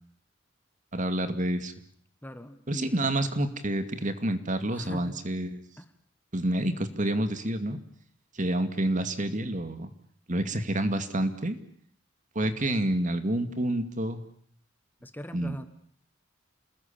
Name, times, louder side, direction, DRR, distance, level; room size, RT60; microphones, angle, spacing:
voice 1, 0.9-1.7 2.7-5.6 6.3-7.8 8.3-9.9 10.3-11.6 12.4-14.2 15.3-15.6, right 1 dB, 40° right, 9 dB, 2.4 m, -28 dB
voice 2, 2.2-3.0 4.7-5.2 5.8-5.9 15.0-15.7, equal, 10° left, 10 dB, 1.3 m, -40 dB
28.5 x 20.0 x 8.7 m, 0.62 s
head